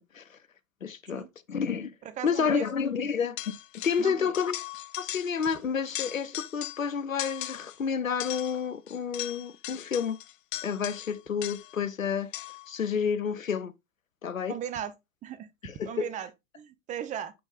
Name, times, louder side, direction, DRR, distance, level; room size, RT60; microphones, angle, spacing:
voice 1, 0.8-1.9 2.2-3.5 3.8-4.6 5.0-10.2 10.6-12.3 12.7-13.7 14.2-14.6 15.6-16.1, left 6 dB, 85° left, 0.6 m, -30 dB
voice 2, 2.0-2.7 4.0-4.3 14.5-14.9 15.2-15.5 15.8-16.3 16.5-17.3, right 10 dB, 20° right, 0.6 m, -37 dB
sound 1, 3.4-4.1 4.3-5.6 5.9-6.9 7.2-7.8 8.2-11.8 12.3-12.7, left 15 dB, 40° left, 0.5 m, -39 dB
8.6 x 5.3 x 2.3 m
figure-of-eight pair, 90°, 39 cm